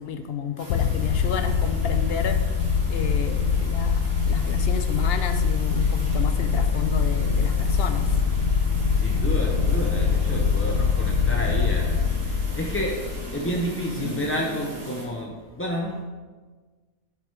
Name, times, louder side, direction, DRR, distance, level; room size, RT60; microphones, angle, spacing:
voice 1, 0.0-2.5 2.9-8.1, left 7 dB, 60° left, 8 dB, 0.7 m, -31 dB
sound 1, 0.6-15.0, right 1 dB, 65° right, 2.5 m, -39 dB
sound 2, 0.7-14.0, left 5 dB, 85° left, 1.1 m, -23 dB
voice 2, 3.5-4.3 7.6-7.7 8.4-16.0, equal, 15° left, -2 dB, 0.4 m, -31 dB
9.8 x 4.9 x 4.5 m, 1.4 s
omnidirectional pair, 1.5 m